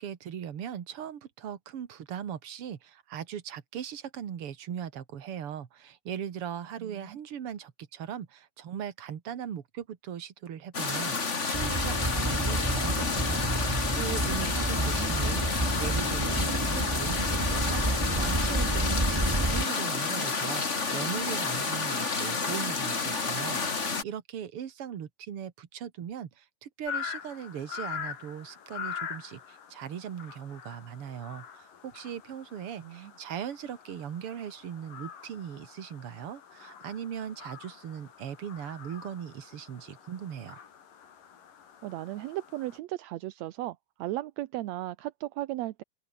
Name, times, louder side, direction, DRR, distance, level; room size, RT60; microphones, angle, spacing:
voice 1, 0.0-40.6, right 9 dB, 50° right, 2.3 m, -39 dB
voice 2, 6.8-7.2 14.4-15.2 32.8-33.1 41.8-45.8, right 16 dB, 75° right, 1.7 m, -36 dB
sound 1, 10.7-24.0, left 4 dB, 25° left, 1.9 m, -30 dB
sound 2, 11.5-19.6, right 1 dB, 10° right, 1.3 m, -30 dB
sound 3, 26.9-42.8, left 7 dB, 75° left, 4.6 m, -44 dB
open air
omnidirectional pair, 3.8 m